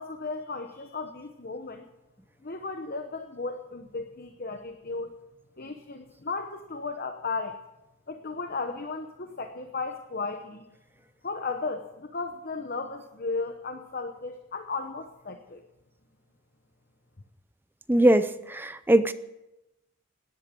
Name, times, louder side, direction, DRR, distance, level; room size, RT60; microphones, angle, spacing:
voice 1, 0.0-1.8 2.4-5.1 5.6-7.6 8.1-10.7 11.2-15.6, left 3 dB, 40° left, 7 dB, 0.9 m, -35 dB
voice 2, 17.9-19.1, right 1 dB, 10° right, 12 dB, 0.5 m, -21 dB
17.5 x 11.0 x 7.5 m, 0.98 s
head